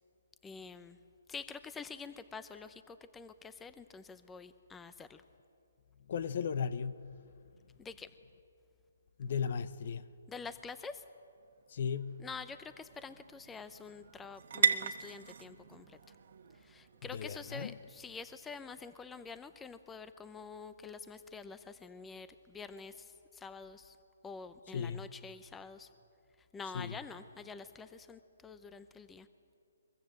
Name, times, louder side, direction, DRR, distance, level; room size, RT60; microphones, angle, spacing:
voice 1, 0.4-1.0 1.3-5.2 7.8-8.1 10.3-11.0 12.2-16.0 16.5-24.0 24.2-25.9 26.5-29.3, left 5 dB, 10° left, 0.8 m, -47 dB
voice 2, 6.1-7.0 9.2-10.1 11.7-12.2 17.1-17.8 24.7-25.0 26.7-27.0, left 6 dB, 55° left, 1.0 m, -36 dB
sound 1, 11.0-18.9, right 7 dB, 60° right, 1.4 m, -39 dB
23.0 x 22.5 x 7.8 m
hypercardioid pair, 150°, 0 cm